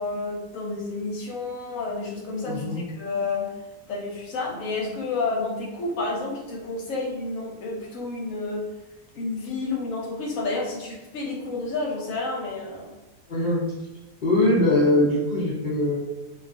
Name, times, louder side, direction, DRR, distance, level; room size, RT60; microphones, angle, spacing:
voice 1, 0.0-3.5 3.9-8.7 9.1-12.9, left 3 dB, 65° left, -3 dB, 0.9 m, -30 dB
voice 2, 2.4-2.8 13.3-13.6 14.2-16.0, left 1 dB, 90° left, -8 dB, 0.4 m, -22 dB
2.6 x 2.4 x 2.4 m, 1.1 s
omnidirectional pair, 1.7 m